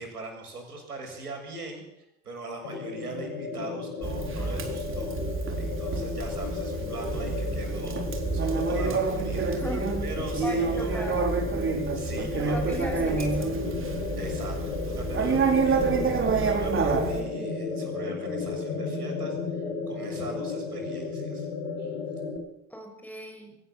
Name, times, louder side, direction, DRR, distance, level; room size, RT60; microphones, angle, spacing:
voice 1, 0.0-5.1 5.6-8.1 8.3-9.5 10.0-11.1 11.9-13.3 14.2-21.5 21.8-21.9, right 3 dB, 80° right, 3 dB, 6.9 m, -41 dB
sound 1, 2.6-22.4, left 4 dB, 55° left, 5.9 m, -33 dB
Conversation, 4.0-17.2, right 4 dB, 25° right, 4.1 m, -28 dB
voice 2, 9.5-9.9 10.4-11.3 12.4-13.6 22.7-23.6, equal, 5° left, 4 dB, 6.9 m, -37 dB
23.0 x 17.5 x 7.6 m, 0.82 s
figure-of-eight pair, 75°, 45 cm